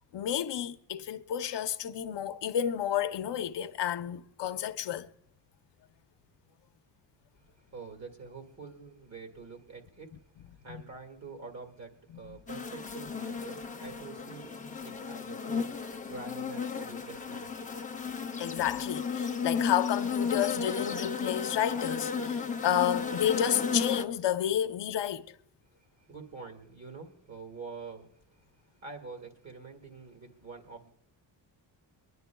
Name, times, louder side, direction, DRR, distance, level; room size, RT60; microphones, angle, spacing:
voice 1, 0.1-5.1 10.7-10.8 12.3-12.4 18.4-25.3, left 10 dB, 70° left, 0.7 m, -31 dB
voice 2, 7.4-17.5 25.7-30.9, right 4 dB, 40° right, 1.9 m, -47 dB
sound 1, 12.5-24.1, left 5 dB, 20° left, 0.6 m, -34 dB
24.5 x 11.0 x 2.3 m
wide cardioid pair, 170°, 43 cm